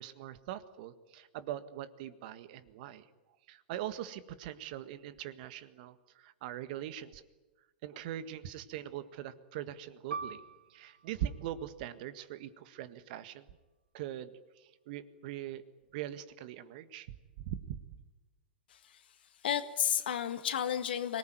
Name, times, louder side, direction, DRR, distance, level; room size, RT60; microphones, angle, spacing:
voice 1, 0.0-3.1 3.5-7.2 7.8-10.4 10.7-13.5 13.9-15.6 15.9-17.8, right 11 dB, 55° right, 13 dB, 1.7 m, -42 dB
Piano, 10.1-15.1 15.5-15.6 16.4-16.8, right 5 dB, 85° right, 1.3 m, -47 dB
voice 2, 18.7-19.0 19.4-21.2, left 9 dB, 70° left, 11 dB, 1.8 m, -32 dB
25.0 x 19.0 x 9.3 m, 1.2 s
hypercardioid pair, 105°, 5 cm